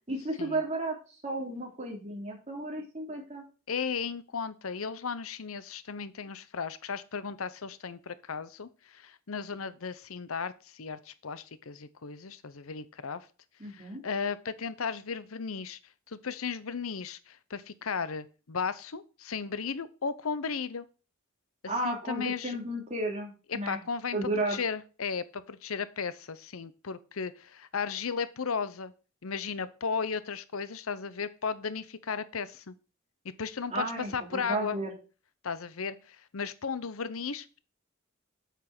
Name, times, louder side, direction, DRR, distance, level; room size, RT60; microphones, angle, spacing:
voice 1, 0.1-0.9 1.2-3.4 13.6-14.0 21.7-23.8 24.1-24.6 33.7-34.9, right 2 dB, 35° right, 0 dB, 3.2 m, -33 dB
voice 2, 3.7-13.3 13.6-15.8 16.1-20.9 21.8-22.6 23.5-28.9 29.2-32.7 33.4-33.8 34.1-34.8 35.4-37.6, left 5 dB, 90° left, 15 dB, 0.8 m, -35 dB
8.3 x 6.0 x 6.0 m, 0.35 s
head